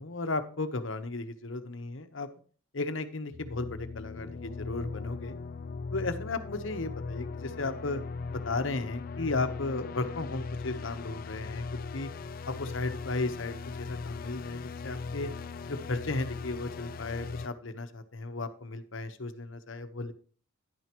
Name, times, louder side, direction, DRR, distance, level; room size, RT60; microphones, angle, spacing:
voice 1, 0.0-2.3 2.7-5.4 5.9-8.0 8.3-11.6 11.9-12.1 12.5-15.3 15.7-20.1, left 3 dB, 70° left, 9 dB, 1.1 m, -35 dB
sound 1, 3.3-17.5, left 4 dB, 45° left, 0.4 m, -39 dB
11.0 x 9.4 x 3.0 m, 0.42 s
head